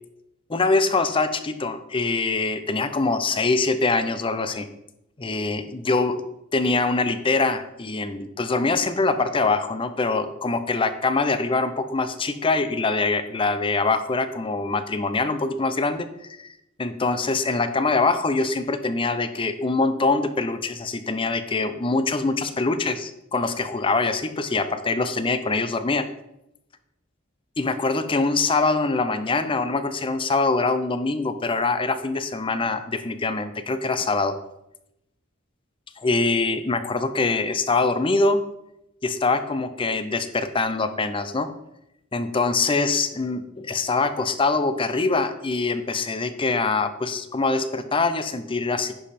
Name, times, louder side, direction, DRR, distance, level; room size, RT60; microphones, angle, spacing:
voice 1, 0.5-4.7 5.2-6.2 6.5-16.5 16.8-26.1 27.6-34.3 36.0-38.4 39.0-41.5 42.1-49.0, left 3 dB, 25° left, 11 dB, 0.6 m, -24 dB
10.5 x 5.2 x 4.3 m, 0.85 s
head